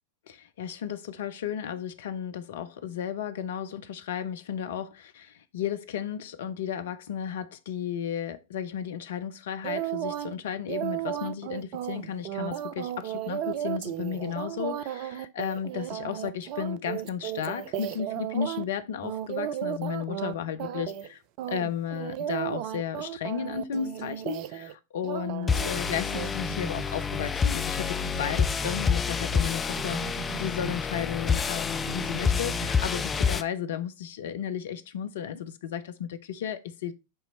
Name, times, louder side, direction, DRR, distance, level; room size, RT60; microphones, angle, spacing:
voice 1, 0.3-21.2 21.5-36.9, left 8 dB, 60° left, 0.6 m, -34 dB
sound 1, 9.6-10.3 10.7-18.6 19.0-20.3 20.6-21.1 21.4-24.7 25.0-25.7 26.1-26.3, right 11 dB, 45° right, 0.4 m, -34 dB
sound 2, 25.5-33.4, left 6 dB, 20° left, 0.4 m, -28 dB
sound 3, 25.7-29.4 29.8-31.4 31.7-33.4, right 5 dB, 70° right, 3.2 m, -41 dB
7.8 x 3.0 x 4.3 m
figure-of-eight pair, 90°, 0 cm